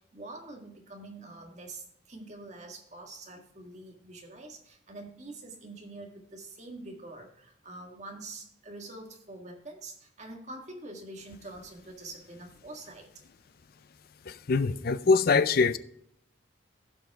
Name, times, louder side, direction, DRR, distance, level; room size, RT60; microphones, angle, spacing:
voice 1, 0.0-13.1, right 2 dB, 35° right, 1.7 m, -45 dB
voice 2, 14.3-15.8, left 4 dB, 50° left, 0.4 m, -23 dB
15.5 x 5.3 x 3.5 m
head